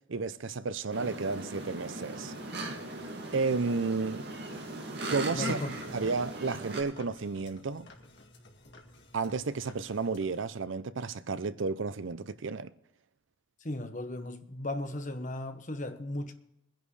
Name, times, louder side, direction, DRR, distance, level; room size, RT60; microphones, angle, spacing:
voice 1, 0.1-2.3 3.3-4.2 5.1-5.6 5.9-7.9 9.1-12.7, right 4 dB, 70° right, 0.6 m, -32 dB
sound 1, 0.9-6.8, right 2 dB, 55° right, 2.2 m, -38 dB
sound 2, 5.2-10.4, left 2 dB, 55° left, 2.0 m, -55 dB
voice 2, 5.3-5.7 13.6-16.3, left 1 dB, 40° left, 1.1 m, -36 dB
22.0 x 10.5 x 3.3 m
head